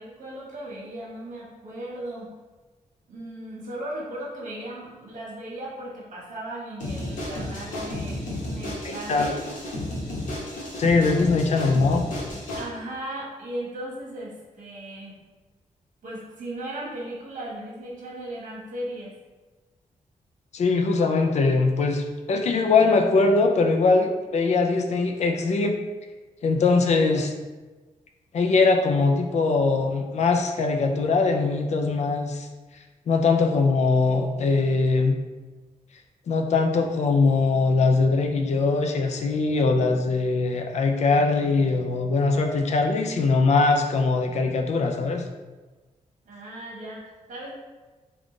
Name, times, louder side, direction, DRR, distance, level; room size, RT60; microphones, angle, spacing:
voice 1, 0.0-2.3 3.1-9.5 12.5-15.2 16.0-19.1 46.2-47.5, right 1 dB, 75° right, -4 dB, 1.2 m, -37 dB
sound 1, 6.8-12.6, left 1 dB, 85° left, 1.1 m, -32 dB
voice 2, 8.8-9.3 10.8-12.0 20.5-25.8 26.4-27.3 28.3-32.5 33.1-35.2 36.3-45.2, left 3 dB, 60° left, 4 dB, 0.4 m, -21 dB
3.6 x 2.4 x 3.7 m, 1.2 s
wide cardioid pair, 155°, 13 cm